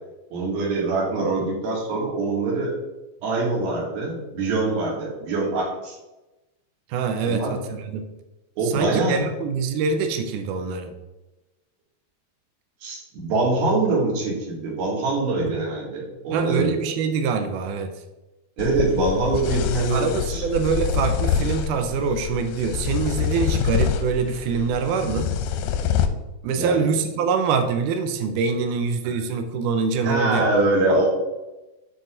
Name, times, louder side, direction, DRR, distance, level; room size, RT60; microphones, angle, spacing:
voice 1, 0.3-2.7 3.2-6.0 7.2-7.6 8.6-9.2 12.8-16.7 18.6-20.4 26.5-26.9 29.0-29.1 30.0-31.1, right 2 dB, 70° right, -4 dB, 4.0 m, -24 dB
voice 2, 6.9-8.1 8.6-10.9 16.3-17.9 19.9-25.3 26.4-30.5, right 5 dB, 90° right, 7 dB, 1.8 m, -24 dB
sound 1, 18.6-26.1, left 8 dB, 80° left, 2.2 m, -26 dB
9.1 x 4.8 x 3.8 m, 1.0 s
omnidirectional pair, 4.4 m